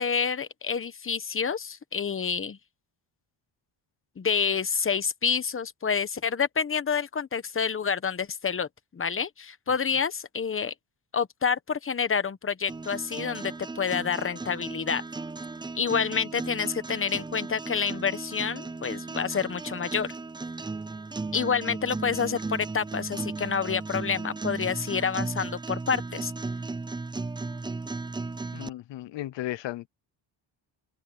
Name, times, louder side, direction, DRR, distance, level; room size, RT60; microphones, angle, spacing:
voice 1, 0.0-2.6 4.2-10.7 11.1-15.0 15.7-20.1 21.3-26.3, left 6 dB, 30° left, 1.1 m, -28 dB
sound 1, 12.7-28.7, right 3 dB, 10° right, 0.4 m, -36 dB
voice 2, 28.5-29.9, left 14 dB, 70° left, 0.8 m, -35 dB
cardioid pair, 135°, 45 cm